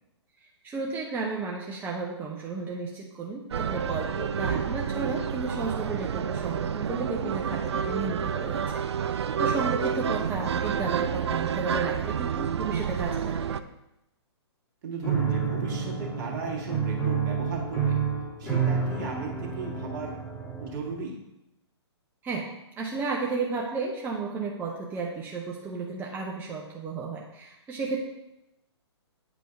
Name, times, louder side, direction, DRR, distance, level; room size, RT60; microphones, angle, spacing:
voice 1, 0.4-13.6 22.2-22.5 22.8-28.0, right 4 dB, 15° right, -2 dB, 0.6 m, -33 dB
sound 1, 3.5-13.6, right 7 dB, 75° right, 0.4 m, -29 dB
voice 2, 14.8-18.0 18.4-20.2 20.6-21.2, right 4 dB, 45° right, -2 dB, 1.7 m, -35 dB
Piano, 15.0-20.9, right 6 dB, 15° left, 2.3 m, -29 dB
9.1 x 4.9 x 2.6 m, 0.91 s
figure-of-eight pair, 125°, 14 cm